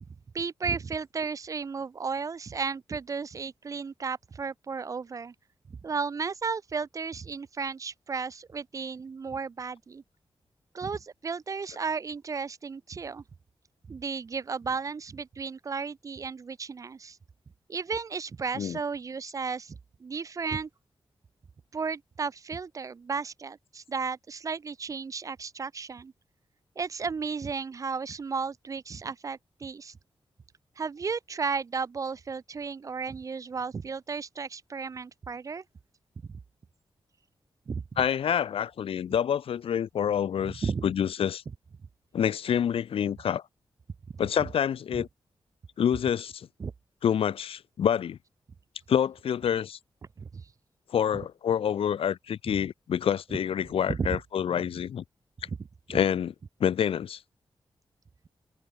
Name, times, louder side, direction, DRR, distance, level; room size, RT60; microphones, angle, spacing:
voice 1, 0.3-5.3 5.8-10.0 10.7-13.2 13.9-17.2 17.7-20.7 21.7-26.1 26.8-29.9 30.8-35.6 36.3-36.4 37.7-38.0 40.4-40.9 44.9-45.0 46.6-46.7 50.2-50.4 52.5-52.6 53.9-54.2, right 5 dB, 35° right, 0.3 m, -34 dB
voice 2, 38.0-41.4 42.1-43.4 44.2-45.1 45.8-46.5 47.0-48.2 48.9-49.8 50.9-55.0 55.9-56.3 56.6-57.2, left 8 dB, 85° left, 0.6 m, -27 dB
open air
wide cardioid pair, 115°, 9 cm